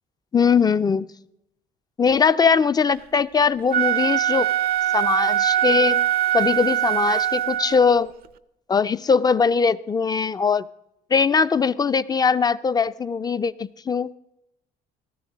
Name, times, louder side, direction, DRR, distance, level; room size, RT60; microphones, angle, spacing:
voice 1, 0.3-1.1 2.0-4.5 4.9-6.0 6.3-8.1 8.7-10.7 11.1-14.1, left 5 dB, 25° left, 14 dB, 0.4 m, -20 dB
Wind instrument woodwind instrument, 3.6-8.0, right 12 dB, 65° right, 0.6 m, -22 dB
18.0 x 13.0 x 3.9 m, 0.83 s
cardioid pair, 110°, 17 cm